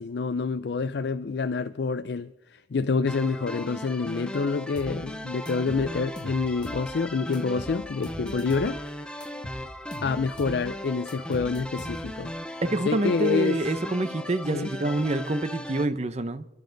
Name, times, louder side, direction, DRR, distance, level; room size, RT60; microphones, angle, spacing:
voice 1, 0.0-8.8 9.1-9.4 10.0-12.3 12.9-13.6 14.5-14.7, left 4 dB, 60° left, 0.4 m, -27 dB
sound 1, 3.1-15.8, left 1 dB, 5° left, 0.6 m, -37 dB
sound 2, 4.8-5.0 5.5-6.9 7.3-8.8 9.2-10.6 11.1-12.3, equal, 25° left, 1.3 m, -41 dB
voice 2, 12.6-16.5, right 1 dB, 35° right, 0.7 m, -27 dB
29.5 x 11.0 x 3.9 m
head